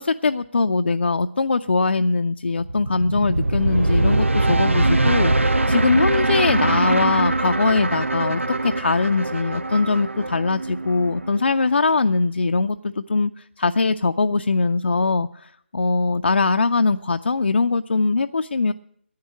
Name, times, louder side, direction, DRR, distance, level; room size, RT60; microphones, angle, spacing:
voice 1, 0.0-18.7, left 3 dB, 65° left, 7 dB, 0.5 m, -21 dB
sound 1, 2.6-11.7, right 2 dB, 80° right, 0.7 m, -22 dB
10.5 x 9.4 x 9.9 m, 0.66 s
figure-of-eight pair, 150°, 7 cm